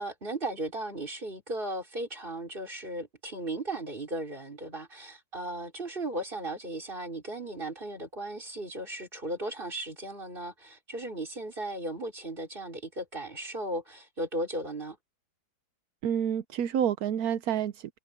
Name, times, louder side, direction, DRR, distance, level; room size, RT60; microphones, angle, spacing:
voice 1, 0.0-15.0, right 1 dB, 25° right, 4.6 m, -36 dB
voice 2, 16.0-18.0, right 9 dB, 65° right, 0.9 m, -29 dB
omnidirectional pair, 2.3 m